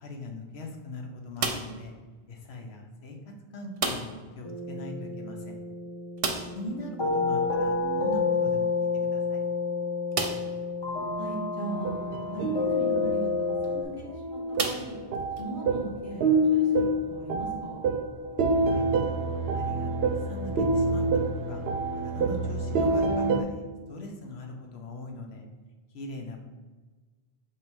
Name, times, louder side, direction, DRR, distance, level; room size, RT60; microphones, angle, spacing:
voice 1, 0.0-1.9 2.3-5.6 6.5-9.4 18.7-18.9 19.5-21.1 21.4-21.7 21.9-25.5 25.9-26.4, left 2 dB, 75° left, 3 dB, 1.1 m, -41 dB
sound 1, 1.4-1.9 3.8-4.3 4.6-4.7 5.0-5.1 6.2-6.7 8.5-8.6 9.2-9.3 10.1-10.6 11.3-11.4 13.4-13.7 14.5-15.4, right 3 dB, 40° right, 0.5 m, -32 dB
sound 2, 4.4-13.8, left 4 dB, 25° left, 1.0 m, -29 dB
voice 2, 11.2-12.0 12.3-14.9 15.4-17.8, right 1 dB, 50° left, -5 dB, 1.7 m, -38 dB
sound 3, 11.7-23.4, right 2 dB, 75° right, 0.8 m, -27 dB
5.5 x 4.8 x 3.5 m, 1.3 s
omnidirectional pair, 1.1 m